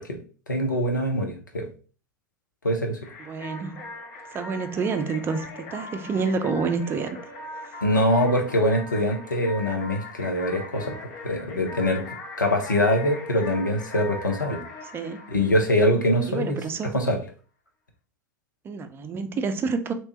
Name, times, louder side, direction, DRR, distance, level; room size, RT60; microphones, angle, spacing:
voice 1, 0.5-1.7 2.6-3.0 7.8-10.9 11.2-12.0 12.4-14.6 15.3-16.6 16.9-17.2, left 1 dB, 85° left, 0.8 m, -23 dB
sound 1, 3.0-16.5, left 2 dB, 50° left, 1.2 m, -40 dB
voice 2, 3.2-3.9 4.3-7.2 7.6-7.7 14.9-15.2 16.3-16.9 18.6-19.9, right 4 dB, 25° right, 0.5 m, -28 dB
3.2 x 3.0 x 3.0 m
figure-of-eight pair, 90°, 10 cm